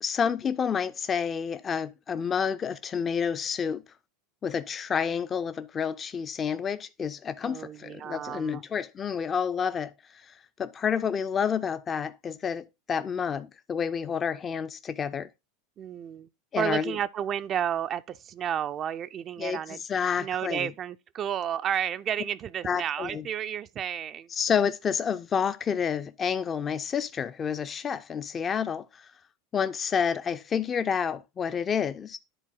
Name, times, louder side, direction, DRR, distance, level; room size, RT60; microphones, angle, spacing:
voice 1, 0.0-3.8 4.4-15.3 16.5-17.0 19.4-20.7 22.6-23.2 24.3-29.1 29.5-32.2, left 7 dB, 30° left, 0.4 m, -29 dB
voice 2, 7.4-8.6 15.8-16.3 16.6-19.8 20.2-24.3, right 9 dB, 35° right, 0.3 m, -32 dB
10.0 x 3.9 x 3.8 m
figure-of-eight pair, 80°, 0 cm